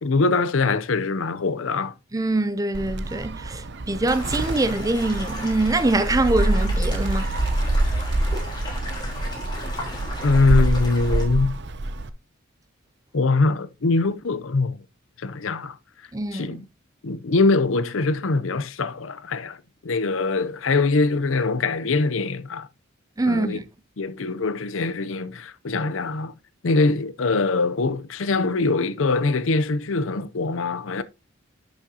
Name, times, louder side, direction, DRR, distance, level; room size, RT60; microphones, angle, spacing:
voice 1, 0.0-1.9 10.2-11.6 13.1-14.8 15.2-15.8 16.3-16.7 17.0-19.6 19.8-22.7 23.3-23.6 24.0-26.3 26.6-31.0, left 3 dB, 75° left, 0.7 m, -23 dB
voice 2, 2.1-7.3 16.1-16.6 23.2-23.6, right 2 dB, 15° right, 0.5 m, -24 dB
Gull seagull, 2.7-12.1, right 2 dB, 55° right, 0.7 m, -26 dB
sound 1, 4.0-11.2, left 1 dB, 20° left, 3.8 m, -36 dB
11.0 x 6.3 x 2.8 m
head